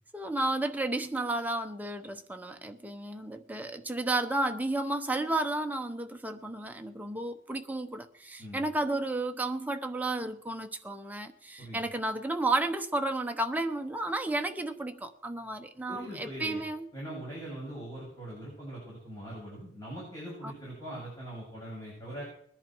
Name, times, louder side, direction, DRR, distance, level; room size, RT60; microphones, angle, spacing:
voice 1, 0.1-16.9, right 2 dB, 10° right, 5 dB, 0.8 m, -32 dB
voice 2, 15.9-16.6 16.9-22.2, right 1 dB, 20° left, -6 dB, 7.5 m, -41 dB
21.0 x 11.0 x 4.6 m, 0.64 s
head